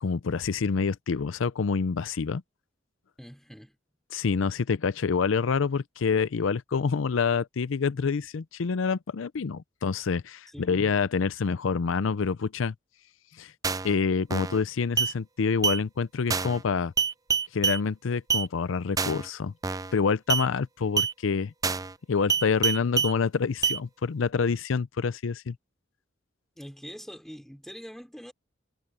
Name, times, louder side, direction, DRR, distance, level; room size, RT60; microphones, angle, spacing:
voice 1, 0.0-2.4 4.1-12.7 13.4-13.5 13.8-16.9 17.5-19.5 19.9-21.5 22.1-25.6, left 5 dB, 80° left, 0.5 m, -27 dB
voice 2, 3.2-3.8 10.5-10.9 26.6-28.3, equal, ahead, 3.1 m, -44 dB
sound 1, 13.6-13.9 14.3-14.6 15.0-15.1 15.6-15.8 16.3-16.6 17.0-17.8 18.3-18.5 19.0-19.3 19.6-19.9 20.3-20.5 21.0-21.1 21.6-21.9 22.3-23.1 23.6-23.8, right 6 dB, 20° right, 0.5 m, -26 dB
head